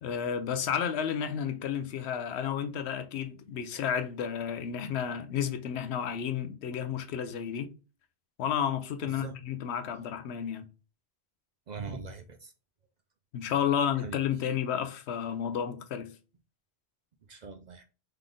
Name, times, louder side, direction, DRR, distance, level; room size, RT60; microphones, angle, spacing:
voice 1, 0.0-7.7 8.4-10.7 13.3-16.1, left 8 dB, 80° left, 0.9 m, -31 dB
voice 2, 9.0-9.4 11.7-12.5 14.0-14.2 17.3-17.8, right 4 dB, 55° right, 0.5 m, -41 dB
3.8 x 3.3 x 3.7 m
omnidirectional pair, 1.1 m